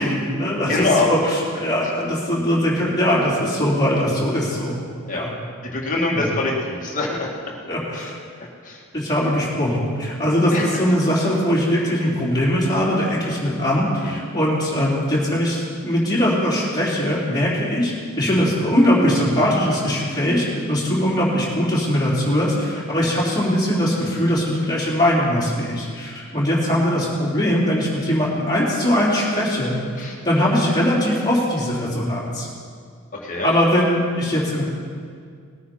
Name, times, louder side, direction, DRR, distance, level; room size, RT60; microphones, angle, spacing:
voice 1, 0.0-4.8 5.1-5.3 6.1-6.3 7.7-8.1 8.9-17.9 18.2-29.8 30.2-32.5 33.4-34.6, equal, 20° left, -7 dB, 3.5 m, -21 dB
voice 2, 0.7-1.1 5.1-5.3 5.6-7.3 7.9-8.1 8.7-8.8 10.5-10.8 14.0-14.2 30.0-30.2 33.1-33.5, left 3 dB, 35° left, -2 dB, 2.1 m, -24 dB
20.0 x 9.6 x 4.6 m, 2.2 s
head